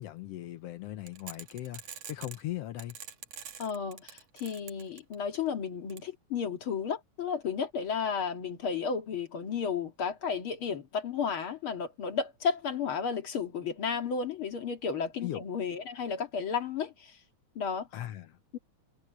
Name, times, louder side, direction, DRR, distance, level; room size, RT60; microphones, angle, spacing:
voice 1, 0.0-3.0 15.2-15.4 17.9-18.4, left 14 dB, 70° left, 1.6 m, -39 dB
sound 1, 1.1-2.4 2.8-5.4 5.9-6.0, right 8 dB, 65° right, 2.6 m, -45 dB
voice 2, 3.6-17.2 17.6-17.9 18.5-18.6, left 6 dB, 50° left, 2.7 m, -33 dB
omnidirectional pair, 3.3 m